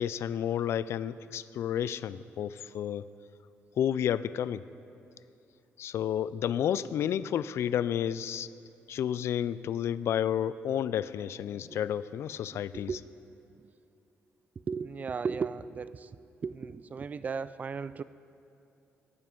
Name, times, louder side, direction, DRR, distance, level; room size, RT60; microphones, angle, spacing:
voice 1, 0.0-3.1 3.8-4.6 5.8-8.5 8.9-12.9, left 9 dB, 65° left, 16 dB, 0.3 m, -31 dB
voice 2, 14.7-16.1 16.4-18.0, right 5 dB, 35° right, 16 dB, 0.3 m, -35 dB
17.0 x 9.4 x 3.8 m, 2.7 s
cardioid pair, 120°, 5 cm